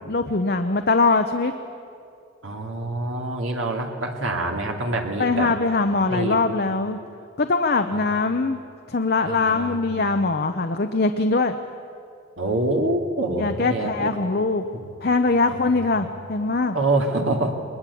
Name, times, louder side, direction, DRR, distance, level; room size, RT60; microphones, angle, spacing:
voice 1, 0.1-1.5 5.2-7.0 7.4-8.6 8.9-11.5 13.4-14.7 15.0-16.8, left 3 dB, 50° left, 7 dB, 0.8 m, -22 dB
voice 2, 2.4-5.5 6.1-6.6 7.9-8.2 9.2-9.9 12.4-14.1 14.7-14.9 15.5-15.7 16.7-17.5, right 2 dB, 75° right, 2 dB, 2.7 m, -26 dB
21.5 x 20.5 x 8.5 m, 2.5 s
head